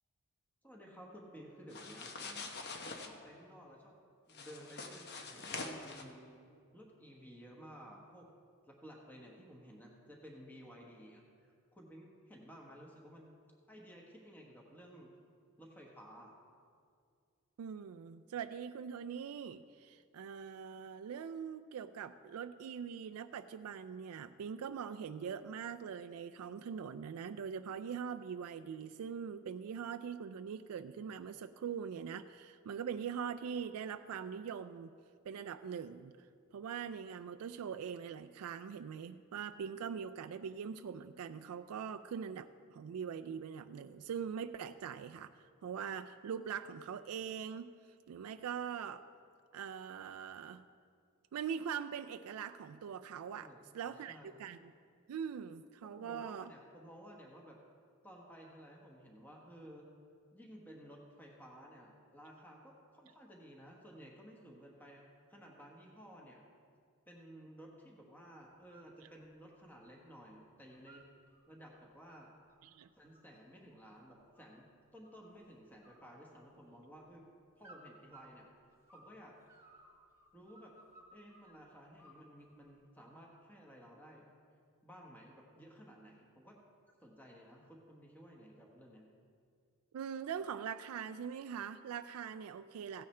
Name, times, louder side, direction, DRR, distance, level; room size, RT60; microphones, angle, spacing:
voice 1, 0.6-2.5 3.0-3.9 4.3-6.4 6.7-8.3 8.7-13.3 13.7-15.1 15.6-16.3 53.4-54.3 55.8-57.6 58.0-59.9 60.3-66.4 67.1-71.1 71.5-72.3 72.9-74.7 74.9-77.2 77.5-78.5 78.9-79.3 80.3-80.7 81.1-84.3 84.8-86.6 87.0-89.1, equal, 10° left, -1 dB, 1.2 m, -55 dB
sound 1, 1.7-3.1 4.3-6.0, left 3 dB, 50° left, 0.9 m, -45 dB
voice 2, 17.6-34.9 35.3-36.1 36.5-45.3 45.6-47.7 48.1-49.0 49.5-50.6 51.3-53.5 53.7-54.7 55.1-56.5 72.6-72.9 89.9-93.0, right 7 dB, 85° right, 8 dB, 0.3 m, -42 dB
sound 2, 68.5-68.9 69.3-70.2 70.5-71.4 71.9-74.6 75.0-75.5 75.8-76.8 77.6-79.1 79.5-81.5 82.0-82.7, right 2 dB, 15° right, 1.6 m, -61 dB
16.0 x 9.2 x 3.3 m, 2.2 s
head